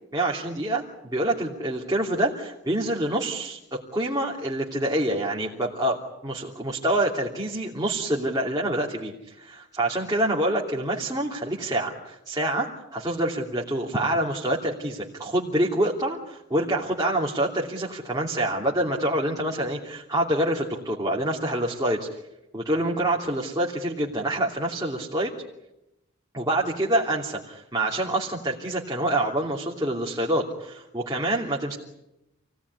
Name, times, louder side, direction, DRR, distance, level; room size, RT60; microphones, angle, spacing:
voice 1, 0.1-9.4 9.8-22.1 22.5-25.3 26.3-31.8, right 1 dB, 20° right, -3 dB, 2.9 m, -26 dB
28.5 x 18.5 x 9.7 m, 0.90 s
head